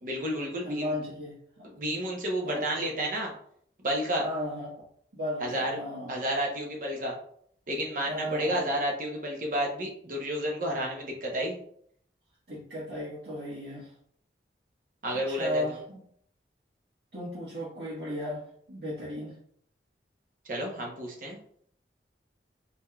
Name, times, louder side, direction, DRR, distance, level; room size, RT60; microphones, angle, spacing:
voice 1, 0.0-0.9 1.6-3.3 3.8-4.2 5.4-5.8 6.1-7.2 7.7-11.6 15.0-15.6 20.5-21.4, right 1 dB, 45° right, 0 dB, 0.8 m, -31 dB
voice 2, 0.6-1.7 2.4-2.8 4.2-4.7 5.1-6.2 8.1-8.7 12.5-13.9 15.3-16.0 17.1-18.4 18.7-19.4, left 1 dB, 65° right, -9 dB, 1.5 m, -35 dB
4.3 x 3.5 x 2.3 m, 0.65 s
head